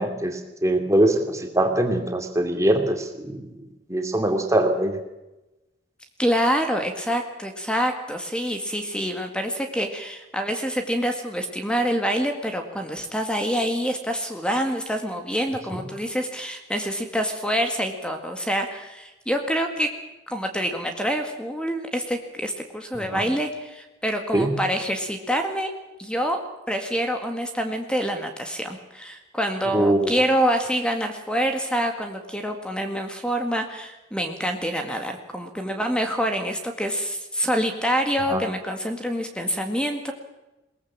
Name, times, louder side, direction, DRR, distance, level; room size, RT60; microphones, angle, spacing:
voice 1, 0.0-3.5 3.9-5.0 15.7-15.8 23.1-23.2 24.3-24.5 29.7-30.2 38.3-38.4, right 1 dB, 15° right, 5 dB, 2.8 m, -22 dB
voice 2, 6.2-19.9 20.3-25.7 26.0-26.4 26.7-40.1, equal, 5° left, 5 dB, 1.9 m, -26 dB
21.5 x 19.0 x 7.5 m, 1.0 s
head